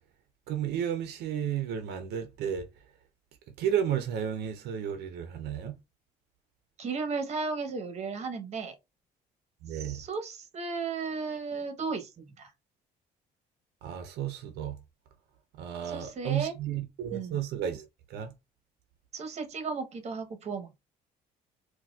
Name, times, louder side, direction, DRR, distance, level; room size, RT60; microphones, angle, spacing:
voice 1, 0.5-2.7 3.6-5.8 9.6-10.0 13.8-14.8 15.6-18.3, right 9 dB, 75° right, 0.5 m, -32 dB
voice 2, 6.8-8.7 9.7-12.5 15.9-16.5 17.1-17.4 19.1-20.7, right 4 dB, 40° right, 0.9 m, -35 dB
4.1 x 2.2 x 2.3 m
cardioid pair, 110°, 17 cm